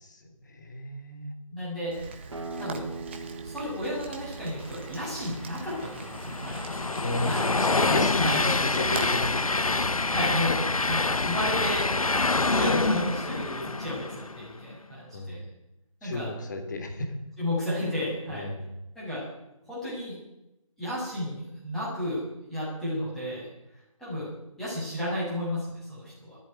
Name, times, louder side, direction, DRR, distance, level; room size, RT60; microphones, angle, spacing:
voice 1, 0.0-1.3 7.0-10.0 15.1-15.4 16.0-17.2 18.3-18.7, left 2 dB, 35° left, 6 dB, 3.5 m, -33 dB
voice 2, 1.5-1.9 2.6-2.8 3.4-6.6 7.3-7.4 8.2-8.4 10.1-11.9 12.5-15.4 16.0-16.3 17.4-18.5 19.0-19.2 19.7-20.2 20.8-22.2 22.5-23.5 24.0-24.3 24.6-26.4, left 1 dB, ahead, -9 dB, 7.3 m, -32 dB
Rain, 1.9-9.1, right 4 dB, 20° right, 1.6 m, -42 dB
sound 1, 2.3-7.7, right 3 dB, 60° right, 3.7 m, -43 dB
Train, 5.0-14.5, left 3 dB, 80° left, 1.0 m, -26 dB
18.5 x 15.0 x 9.3 m, 0.89 s
figure-of-eight pair, 165°, 18 cm